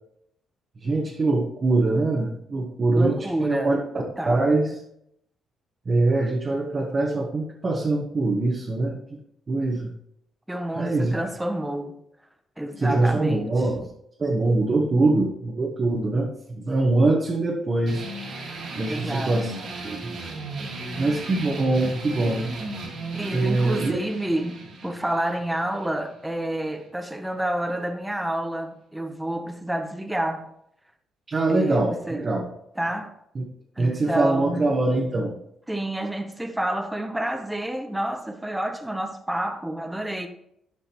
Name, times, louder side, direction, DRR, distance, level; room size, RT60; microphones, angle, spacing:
voice 1, 0.8-3.8 4.2-4.8 5.8-9.0 9.5-9.9 10.7-11.1 12.8-13.9 14.2-18.1 18.8-19.5 19.8-20.1 21.0-22.5 23.3-24.0 31.3-32.5 33.3-33.4 33.8-35.4, right 2 dB, 35° right, 1.2 m, -23 dB
voice 2, 2.9-4.5 10.5-11.9 12.6-13.5 18.8-19.4 22.2-22.4 23.1-30.5 31.5-32.2 32.8-33.1 33.8-34.7 35.7-40.3, right 1 dB, 5° right, 0.8 m, -29 dB
Hoover Riff, 17.9-26.9, right 2 dB, 65° right, 2.3 m, -36 dB
13.0 x 5.1 x 3.0 m
cardioid pair, 90°, 0 cm